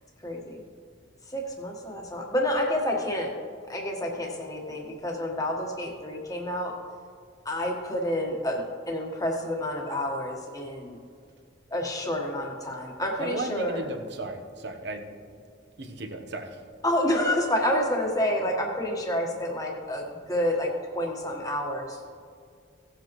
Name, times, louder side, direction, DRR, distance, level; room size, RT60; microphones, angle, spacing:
voice 1, 0.2-0.6 1.3-3.3 3.7-6.7 7.4-11.0 11.7-13.9 16.8-22.0, left 1 dB, 15° left, 0 dB, 1.3 m, -29 dB
voice 2, 13.2-15.0 15.8-16.6, right 2 dB, 55° right, 5 dB, 1.0 m, -35 dB
17.5 x 7.8 x 3.1 m, 2.3 s
head